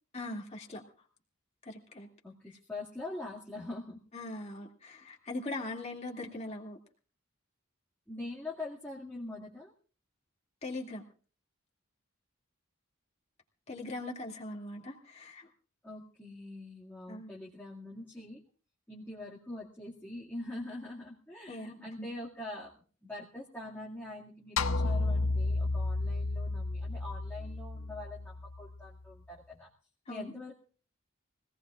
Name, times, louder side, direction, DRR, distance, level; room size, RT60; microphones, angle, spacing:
voice 1, 0.1-0.8 1.6-2.1 4.1-6.8 10.6-11.0 13.7-15.5 17.1-17.3 21.5-22.1 30.1-30.3, left 2 dB, 30° left, -1 dB, 2.5 m, -41 dB
voice 2, 2.2-4.0 8.1-9.7 15.8-18.4 18.9-22.7 23.0-29.7 30.1-30.5, left 2 dB, 10° left, -6 dB, 2.1 m, -43 dB
sound 1, 24.6-29.0, left 3 dB, 75° left, 0.7 m, -32 dB
24.5 x 18.0 x 2.5 m, 0.40 s
head